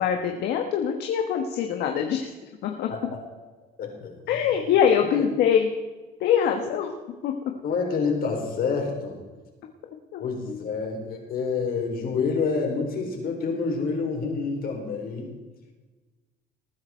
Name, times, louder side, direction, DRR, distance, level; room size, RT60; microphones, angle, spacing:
voice 1, 0.0-2.3 2.6-2.9 4.3-5.7 6.2-6.9 7.2-7.3 10.1-10.6, left 8 dB, 80° left, 4 dB, 1.3 m, -23 dB
voice 2, 3.8-4.1 5.1-5.2 7.6-9.2 10.2-15.3, left 4 dB, 60° left, 1 dB, 4.3 m, -28 dB
20.0 x 9.7 x 4.5 m, 1.2 s
cardioid pair, 110°, 17 cm